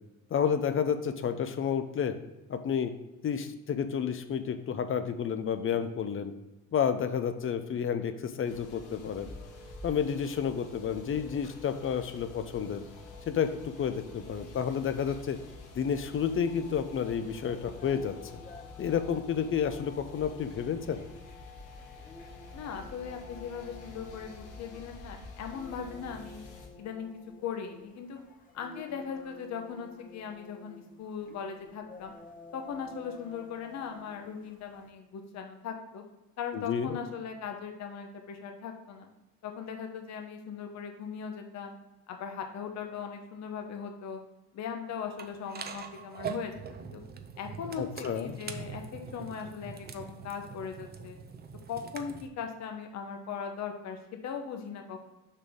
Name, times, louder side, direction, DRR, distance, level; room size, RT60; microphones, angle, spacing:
voice 1, 0.3-2.2 2.5-2.9 3.2-6.3 6.7-9.3 9.8-12.8 13.3-15.4 15.7-18.2 18.8-21.0 36.5-37.0 47.8-48.4, left 7 dB, 45° left, 9 dB, 0.6 m, -30 dB
sound 1, 8.4-26.7, left 3 dB, 80° left, 1.7 m, -48 dB
sound 2, 17.4-34.9, left 2 dB, 25° left, 1.2 m, -53 dB
voice 2, 22.5-26.4 26.8-27.1 27.4-28.2 28.5-32.1 32.5-36.0 36.4-39.1 39.4-41.7 42.1-44.2 44.5-47.0 47.4-51.2 51.7-55.0, left 7 dB, 60° left, 4 dB, 1.1 m, -39 dB
sound 3, 45.2-52.3, right 6 dB, 30° right, 0.6 m, -43 dB
6.6 x 5.2 x 3.6 m, 1.0 s
cardioid pair, 125°, 30 cm